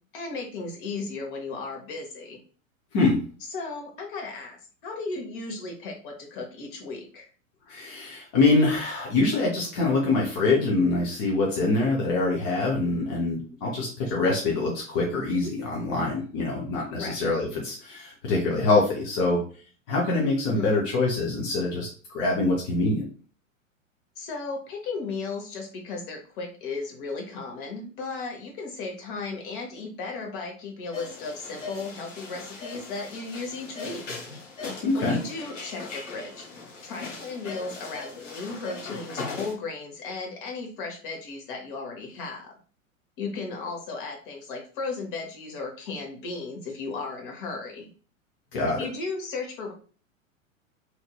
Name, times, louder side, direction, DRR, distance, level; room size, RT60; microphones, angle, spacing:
voice 1, 0.1-2.4 3.5-4.6 4.8-7.3 14.0-14.1 15.3-15.5 17.0-17.1 20.5-20.9 24.2-34.0 34.9-36.5 36.8-42.5 43.2-47.9 48.8-49.7, left 4 dB, 40° left, 1 dB, 0.9 m, -35 dB
voice 2, 7.7-19.4 19.9-23.1 34.8-35.2 48.5-48.8, left 3 dB, 20° left, -4 dB, 0.3 m, -24 dB
sound 1, 30.9-39.5, left 3 dB, 60° left, 1.1 m, -39 dB
2.9 x 2.5 x 2.3 m, 0.41 s
figure-of-eight pair, 95°, 40 cm